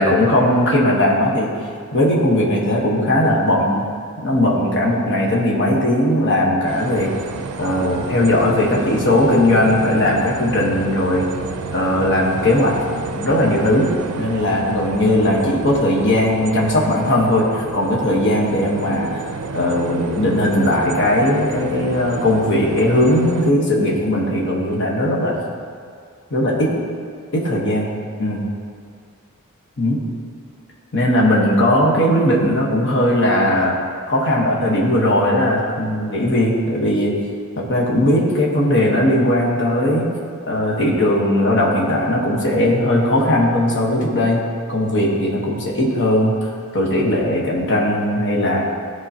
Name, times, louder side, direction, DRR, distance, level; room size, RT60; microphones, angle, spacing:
voice 1, 0.0-1.5 1.9-3.9 4.2-7.1 7.6-11.3 11.7-19.2 19.5-25.4 26.3-26.8 27.3-27.9 28.2-28.4 29.8-30.0 30.9-33.8 34.1-37.1 37.6-40.1 40.5-48.6, left 1 dB, 55° left, -3 dB, 1.2 m, -18 dB
sound 1, 6.7-23.5, right 4 dB, 80° right, 0.4 m, -30 dB
13.5 x 4.8 x 2.9 m, 2.2 s
head